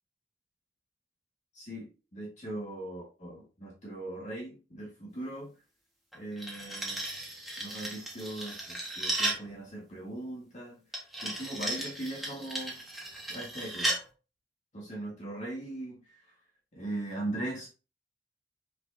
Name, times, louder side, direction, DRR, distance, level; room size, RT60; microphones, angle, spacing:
voice 1, 1.5-5.5 6.1-7.0 7.6-10.8 11.2-12.8 13.3-14.0 14.7-16.0 16.7-17.7, right 1 dB, 40° left, -3 dB, 1.9 m, -39 dB
sound 1, 6.1-9.5 10.9-14.0, right 1 dB, ahead, 1.5 m, -35 dB
6.1 x 5.8 x 2.7 m, 0.32 s
head